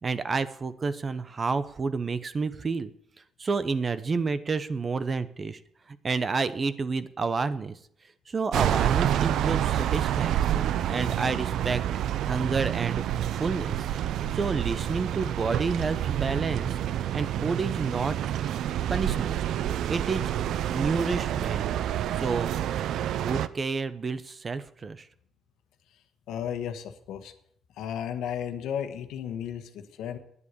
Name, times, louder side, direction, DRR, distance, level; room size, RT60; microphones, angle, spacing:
voice 1, 0.0-2.9 3.4-5.6 5.9-7.8 8.3-11.8 12.3-13.0 13.3-13.9 14.3-16.8 17.1-18.2 18.9-19.4 19.9-20.3 20.7-21.6 22.1-22.5 23.2-25.1, right 4 dB, 35° right, 14 dB, 0.8 m, -29 dB
sound 1, 8.5-23.5, right 11 dB, 80° right, 0.5 m, -28 dB
voice 2, 26.3-27.3 27.7-30.2, left 9 dB, 85° left, 8 dB, 1.3 m, -34 dB
9.7 x 8.1 x 8.5 m, 0.68 s
cardioid pair, 90°, 0 cm